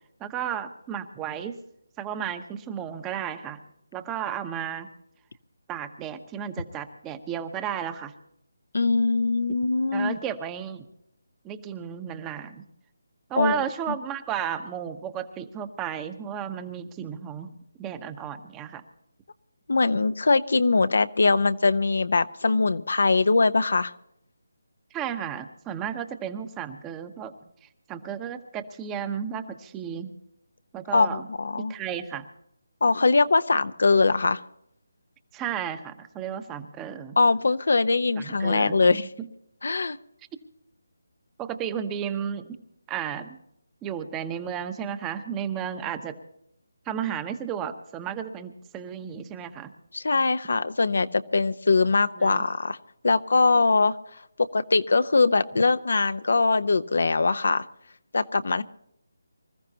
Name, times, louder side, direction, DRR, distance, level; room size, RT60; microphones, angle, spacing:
voice 1, 0.2-1.6 2.0-3.6 3.9-4.9 5.7-8.1 9.9-10.8 11.4-12.7 13.3-17.5 17.8-18.8 24.9-27.3 27.6-30.1 30.7-31.3 31.6-32.3 35.3-37.1 38.2-39.3 41.4-42.6 42.9-43.4 43.8-46.2 46.9-49.7 52.2-52.4, right 9 dB, 15° right, 9 dB, 1.0 m, -33 dB
voice 2, 8.7-10.2 13.4-13.6 19.7-23.9 30.9-31.7 32.8-34.4 37.2-39.1 39.6-40.0 49.9-52.8 53.0-54.0 54.5-57.6 58.1-58.6, left 3 dB, 70° left, 12 dB, 0.9 m, -22 dB
25.5 x 14.5 x 2.9 m, 0.77 s
figure-of-eight pair, 165°, 0 cm